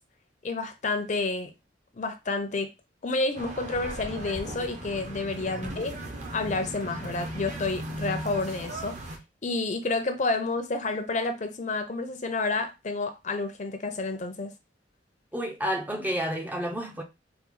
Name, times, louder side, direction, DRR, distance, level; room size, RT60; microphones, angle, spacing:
voice 1, 0.4-1.5 2.0-2.7 3.0-6.0 6.3-9.0 9.4-14.5, left 3 dB, 40° left, 0.7 m, -30 dB
sound 1, 3.3-9.2, right 1 dB, 40° right, 0.8 m, -37 dB
voice 2, 5.4-5.9 15.3-17.0, equal, 10° right, 0.6 m, -31 dB
4.4 x 2.3 x 3.8 m
head